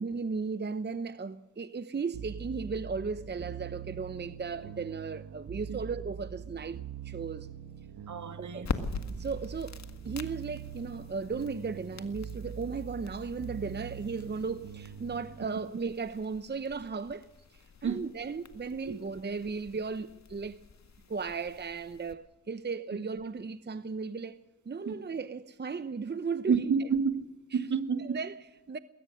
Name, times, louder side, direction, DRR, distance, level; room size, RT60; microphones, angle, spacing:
voice 1, 0.0-7.5 8.4-8.7 9.1-20.6 21.1-24.4 24.7-26.9 27.5-27.7 28.0-28.8, right 4 dB, 30° right, 0.9 m, -36 dB
sound 1, 2.1-15.5, right 9 dB, 85° right, 1.6 m, -43 dB
voice 2, 8.1-8.7 17.8-18.0 18.9-19.0 24.9-25.0 26.5-27.2 27.5-28.2, right 6 dB, 60° right, 2.1 m, -29 dB
sound 2, 8.6-22.1, left 5 dB, 55° left, 1.9 m, -44 dB
21.5 x 18.5 x 6.5 m
cardioid pair, 70°, 33 cm